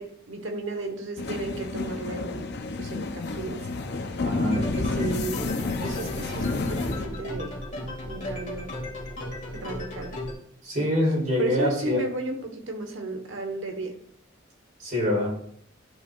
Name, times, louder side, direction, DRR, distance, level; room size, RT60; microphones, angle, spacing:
voice 1, 0.0-2.5 2.8-3.7 4.5-7.6 8.0-8.7 9.5-10.2 11.4-14.0, right 2 dB, 70° right, 4 dB, 1.3 m, -34 dB
sound 1, 1.2-7.1, left 3 dB, 55° left, 0.6 m, -30 dB
voice 2, 4.2-4.6 10.6-12.0 14.8-15.3, left 1 dB, 40° right, -4 dB, 3.2 m, -25 dB
sound 2, 4.5-10.3, left 1 dB, 40° left, 2.0 m, -36 dB
11.0 x 5.6 x 2.4 m, 0.65 s
head